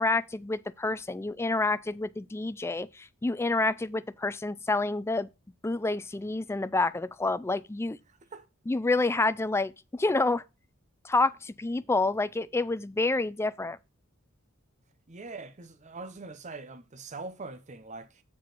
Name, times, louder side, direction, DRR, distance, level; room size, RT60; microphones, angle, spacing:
voice 1, 0.0-5.3 5.6-8.0 8.7-10.4 11.0-13.8, left 2 dB, 10° left, 0.4 m, -28 dB
voice 2, 8.1-8.5 15.1-18.2, right 3 dB, 35° right, 0.8 m, -43 dB
7.2 x 5.1 x 4.4 m
head